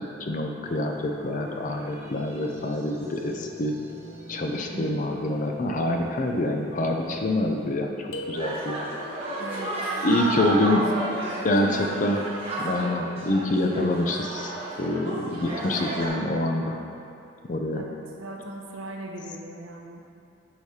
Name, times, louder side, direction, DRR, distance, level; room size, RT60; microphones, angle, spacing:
voice 1, 0.2-3.8 4.3-8.9 10.0-10.8 11.4-12.2 12.6-14.5 14.8-16.8 17.5-17.8, left 1 dB, 40° left, 3 dB, 0.4 m, -26 dB
sound 1, 0.6-7.8, equal, 15° right, 0.5 m, -45 dB
voice 2, 4.7-5.1 9.4-9.7 10.2-10.7 10.9-12.0 17.7-20.0, right 2 dB, 75° right, 1 dB, 0.7 m, -38 dB
sound 2, 8.1-9.2, left 1 dB, 85° left, 0.6 m, -38 dB
sound 3, 8.3-16.1, right 2 dB, 30° right, 1.1 m, -32 dB
8.0 x 4.8 x 2.8 m, 2.6 s
head